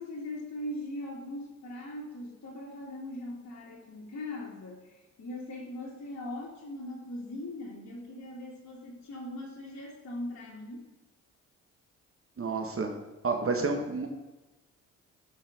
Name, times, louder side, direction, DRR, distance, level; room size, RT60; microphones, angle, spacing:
voice 1, 0.0-10.9, left 1 dB, 45° left, -4 dB, 2.8 m, -40 dB
voice 2, 12.4-12.9 13.2-14.1, right 4 dB, 35° right, 4 dB, 1.5 m, -30 dB
13.0 x 5.6 x 3.7 m, 1.1 s
hypercardioid pair, 50°, 38 cm